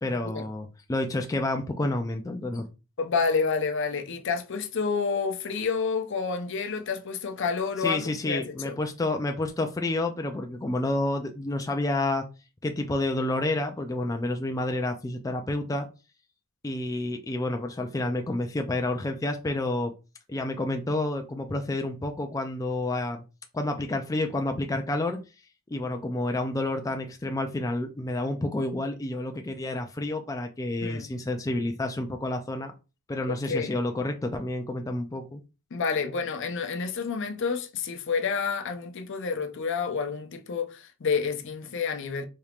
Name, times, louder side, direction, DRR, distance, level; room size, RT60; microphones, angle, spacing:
voice 1, 0.0-2.6 7.8-12.3 12.6-15.9 16.6-19.9 20.3-23.2 23.5-25.2 25.7-32.7 33.1-35.4, left 2 dB, 15° left, 0.4 m, -29 dB
voice 2, 3.0-8.8 30.8-31.1 33.3-33.7 35.7-42.3, left 5 dB, 60° left, 0.6 m, -29 dB
4.3 x 3.4 x 2.4 m
head